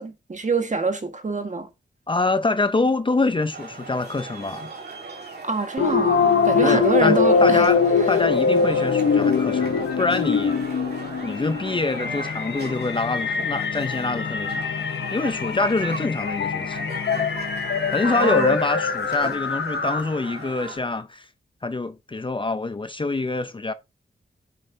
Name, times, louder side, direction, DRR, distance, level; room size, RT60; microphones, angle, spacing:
voice 1, 0.0-1.7 5.4-7.7 18.0-18.6, right 4 dB, 40° right, 1.6 m, -25 dB
voice 2, 2.1-4.7 6.6-10.5 11.2-17.3 17.9-21.3 21.6-23.7, left 3 dB, 25° left, 0.5 m, -25 dB
sound 1, 3.5-20.8, right 3 dB, 60° right, 2.9 m, -38 dB
sound 2, 5.8-20.3, left 5 dB, 80° left, 1.0 m, -23 dB
9.8 x 6.6 x 2.7 m
wide cardioid pair, 100°, 19 cm